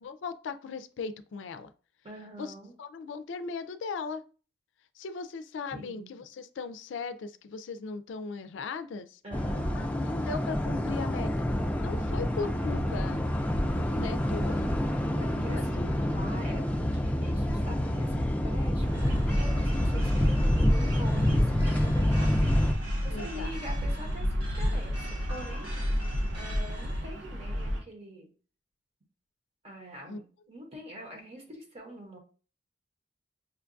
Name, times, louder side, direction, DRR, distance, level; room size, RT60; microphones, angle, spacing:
voice 1, 0.0-1.7 2.4-2.5 2.8-4.2 5.0-9.2 9.8-11.4 11.8-13.4 13.7-14.6 15.4-15.9 23.1-23.5 30.1-30.2, left 4 dB, 85° left, 11 dB, 0.4 m, -38 dB
voice 2, 2.0-2.7 5.7-6.1 9.2-10.0 14.5-25.0 25.3-28.3 29.6-32.2, right 1 dB, 35° right, 1 dB, 0.9 m, -45 dB
sound 1, 9.3-22.7, left 1 dB, 10° left, 0.4 m, -27 dB
Bird vocalization bird call bird song, 18.8-27.8, equal, 85° right, 0.6 m, -33 dB
sound 2, 18.9-27.1, right 1 dB, 60° right, 1.8 m, -47 dB
5.6 x 2.3 x 2.5 m, 0.38 s
head